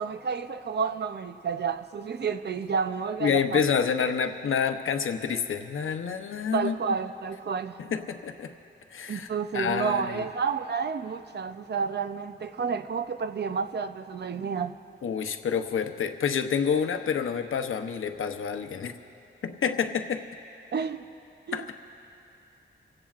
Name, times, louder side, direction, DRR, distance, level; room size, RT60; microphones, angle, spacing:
voice 1, 0.0-3.6 6.5-7.8 9.1-14.7 20.7-21.1 21.5-21.9, right 5 dB, 55° right, 10 dB, 0.6 m, -30 dB
voice 2, 3.2-6.8 7.9-8.5 8.9-9.3 9.5-10.2 15.0-18.9 19.4-20.2 21.5-21.7, left 7 dB, 90° left, 7 dB, 0.8 m, -28 dB
27.5 x 16.5 x 2.5 m, 2.7 s
wide cardioid pair, 150°, 20 cm